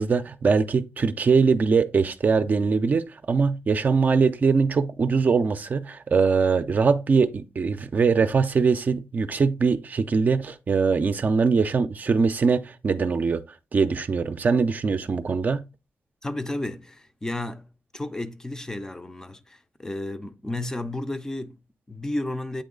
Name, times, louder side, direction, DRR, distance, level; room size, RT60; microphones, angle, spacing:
voice 1, 0.0-13.4 13.7-15.6, right 5 dB, 40° right, 0.5 m, -22 dB
voice 2, 16.2-22.6, left 1 dB, 15° left, 0.5 m, -33 dB
8.4 x 3.1 x 3.7 m
cardioid pair, 115°, 4 cm